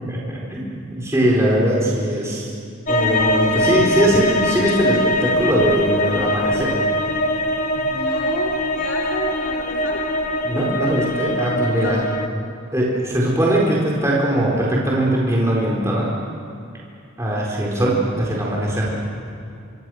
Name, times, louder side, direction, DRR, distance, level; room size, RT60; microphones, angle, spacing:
voice 1, 0.1-2.5 2.9-6.7 7.8-8.0 10.4-12.0 12.7-16.1 17.2-18.9, right 1 dB, 15° right, -4 dB, 4.4 m, -20 dB
sound 1, 2.9-12.3, left 1 dB, 40° left, 1.2 m, -22 dB
voice 2, 7.9-10.1 11.7-12.1, left 2 dB, 65° left, -2 dB, 3.0 m, -30 dB
27.0 x 24.5 x 6.5 m, 2.4 s
head